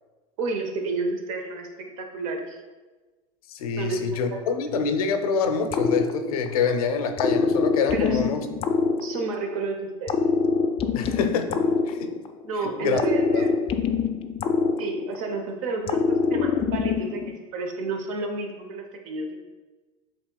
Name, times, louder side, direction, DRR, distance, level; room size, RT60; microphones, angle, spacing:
voice 1, 0.4-2.6 3.8-4.4 7.9-8.2 9.0-10.2 12.4-13.5 14.8-19.4, right 3 dB, 70° right, 4 dB, 0.8 m, -31 dB
voice 2, 3.5-8.5 10.9-11.6 11.9-12.1 12.6-13.0 13.3-13.5, left 5 dB, 80° left, 7 dB, 0.5 m, -26 dB
sound 1, 5.7-6.7 7.2-9.6 10.1-12.5 13.0-15.4 15.9-17.4, left 5 dB, 30° left, 0.4 m, -24 dB
7.4 x 2.9 x 2.3 m, 1.3 s
hypercardioid pair, 95°, 18 cm